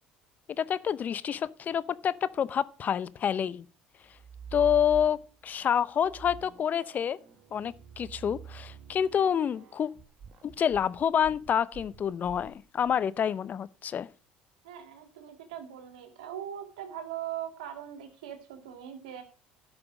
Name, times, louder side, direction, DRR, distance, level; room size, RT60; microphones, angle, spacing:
voice 1, 0.6-3.7 4.5-7.2 7.5-9.9 10.4-14.1, left 8 dB, 45° left, 0.6 m, -28 dB
sound 1, 4.1-5.5 6.0-13.0, right 7 dB, 55° right, 1.9 m, -47 dB
voice 2, 14.6-19.2, right 10 dB, 85° right, 2.1 m, -40 dB
11.0 x 6.1 x 6.2 m
hypercardioid pair, 75°, 4 cm